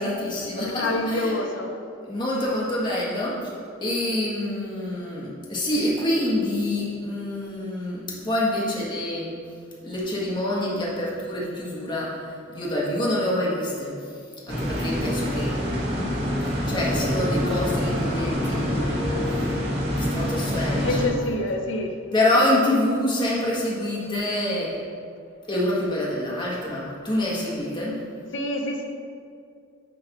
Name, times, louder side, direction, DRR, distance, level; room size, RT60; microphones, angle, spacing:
voice 1, 0.0-1.4 2.1-3.5 3.8-9.3 9.8-14.1 14.5-15.5 15.8-16.1 16.5-19.2 19.9-21.1 22.1-24.8 25.5-28.0, left 1 dB, 20° left, -5 dB, 1.6 m, -26 dB
voice 2, 0.6-1.7 20.8-21.9 28.3-28.8, left 1 dB, 60° left, 4 dB, 0.8 m, -26 dB
sound 1, 14.5-21.1, equal, 50° right, 1.8 m, -26 dB
9.0 x 3.9 x 5.9 m, 2.3 s
head